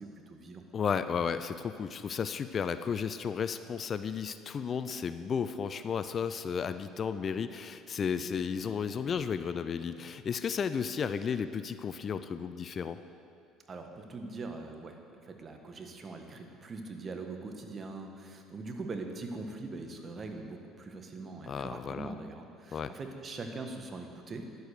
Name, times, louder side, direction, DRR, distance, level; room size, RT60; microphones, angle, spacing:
voice 1, 0.0-0.6 13.7-24.6, right 3 dB, 40° right, 4 dB, 1.4 m, -42 dB
voice 2, 0.7-13.0 21.5-22.1 22.7-22.9, left 6 dB, 45° left, 12 dB, 0.5 m, -33 dB
11.0 x 8.2 x 6.7 m, 2.5 s
supercardioid pair, 75°, 0 cm